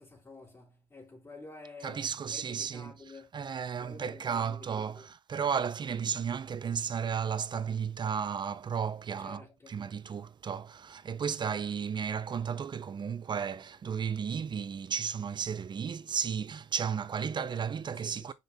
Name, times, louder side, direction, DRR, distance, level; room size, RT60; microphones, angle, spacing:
voice 1, 0.0-3.3 3.8-4.6 4.9-5.1 9.2-9.7 18.0-18.3, left 3 dB, 25° left, 3.0 m, -50 dB
voice 2, 1.8-2.9 3.3-18.3, right 7 dB, 40° right, 0.6 m, -34 dB
6.7 x 4.5 x 3.5 m
cardioid pair, 90°, 11 cm